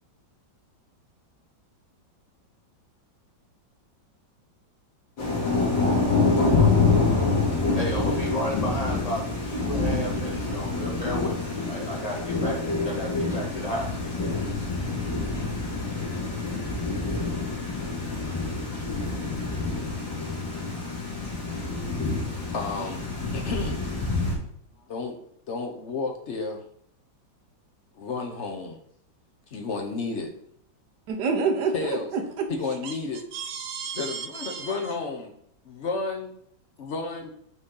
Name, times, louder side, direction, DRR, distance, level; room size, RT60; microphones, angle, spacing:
Thunder / Rain, 5.2-24.4, left 3 dB, 75° left, 2.7 m, -26 dB
voice 1, 7.7-11.4 11.6-12.6 12.8-13.9, equal, 20° left, -3 dB, 1.5 m, -32 dB
voice 2, 22.5-23.0 23.3-23.8 24.9-25.2 25.5-26.6 28.0-28.8 29.5-30.3 31.7-32.1 32.5-33.2 33.9-35.3 35.6-36.3 36.8-37.3, left 4 dB, 55° left, 3 dB, 0.8 m, -32 dB
voice 3, 31.1-32.5 32.8-32.9 33.3-34.7, right 5 dB, 65° right, 4 dB, 1.4 m, -29 dB
6.1 x 4.1 x 3.8 m, 0.66 s
omnidirectional pair, 2.1 m